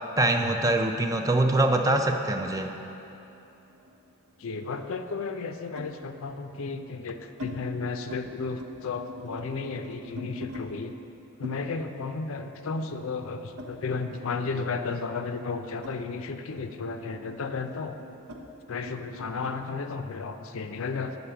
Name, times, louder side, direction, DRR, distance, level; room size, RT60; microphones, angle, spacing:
voice 1, 0.2-2.8, right 2 dB, 15° right, 5 dB, 0.4 m, -24 dB
sound 1, 2.9-4.5 5.8-6.0 6.7-7.5 7.9-8.2 8.5-10.7 11.4-14.3 14.6-19.6, left 2 dB, 85° right, 0.8 m, -44 dB
voice 2, 4.4-10.9 11.4-18.0 18.7-21.2, left 4 dB, 65° left, 8 dB, 0.5 m, -33 dB
10.5 x 4.0 x 6.8 m, 3.0 s
head